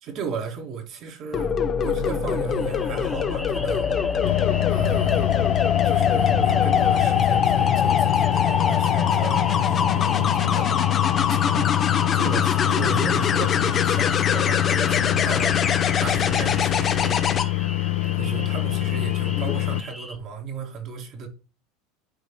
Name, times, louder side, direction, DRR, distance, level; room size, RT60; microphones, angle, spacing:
voice 1, 0.0-3.9 4.7-5.3 5.8-10.8 11.3-11.8 12.1-15.5 16.0-17.2 18.1-21.3, right 6 dB, 50° right, 2.2 m, -34 dB
sound 1, 1.3-17.4 19.4-19.6, left 7 dB, 35° left, 0.9 m, -23 dB
sound 2, 2.5-20.2, equal, ahead, 0.8 m, -40 dB
sound 3, 4.2-19.8, left 19 dB, 75° left, 0.6 m, -25 dB
11.5 x 4.1 x 2.2 m
hypercardioid pair, 105°, 0 cm